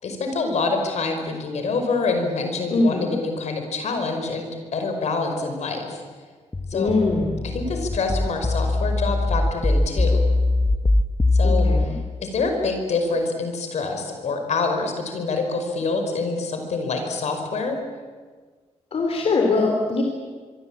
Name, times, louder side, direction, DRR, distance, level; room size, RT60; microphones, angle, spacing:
voice 1, 0.0-6.0 6.7-6.9 7.5-10.2 11.3-11.7 12.2-17.8, left 3 dB, 75° left, 5 dB, 5.3 m, -26 dB
voice 2, 2.7-3.2 6.7-7.3 11.4-11.9 18.9-20.0, left 3 dB, 60° left, 2 dB, 3.5 m, -22 dB
sound 1, 6.5-11.9, left 2 dB, 20° left, 1.2 m, -21 dB
25.5 x 23.5 x 8.8 m, 1.5 s
wide cardioid pair, 125°, 12 cm